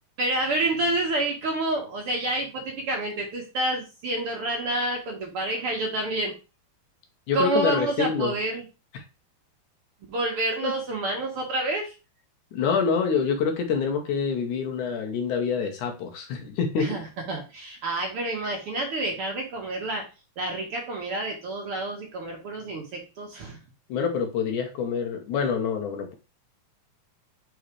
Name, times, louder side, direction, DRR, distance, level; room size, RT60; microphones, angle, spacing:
voice 1, 0.2-6.3 7.3-8.6 10.1-11.9 16.8-20.0 20.4-23.6, right 2 dB, 60° right, 1 dB, 1.7 m, -28 dB
voice 2, 7.3-8.3 10.6-10.7 12.5-16.9 17.8-18.0 23.9-26.2, left 6 dB, 75° left, 3 dB, 2.6 m, -26 dB
5.6 x 4.0 x 4.7 m, 0.30 s
omnidirectional pair, 3.6 m